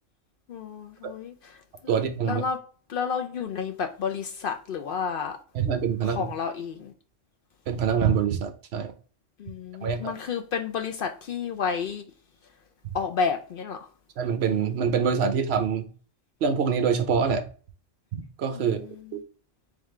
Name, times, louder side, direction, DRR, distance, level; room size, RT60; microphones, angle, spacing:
voice 1, 0.5-1.6 1.8-2.0 2.2-2.6 2.9-5.4 6.0-6.9 9.4-12.1 12.9-13.8 18.5-19.1, left 6 dB, 60° left, 0.6 m, -31 dB
voice 2, 1.9-2.4 5.5-6.3 7.7-8.9 9.8-10.1 14.2-15.9 16.4-17.4 18.1-19.2, right 6 dB, 60° right, 0.9 m, -25 dB
3.6 x 3.6 x 3.1 m
omnidirectional pair, 1.3 m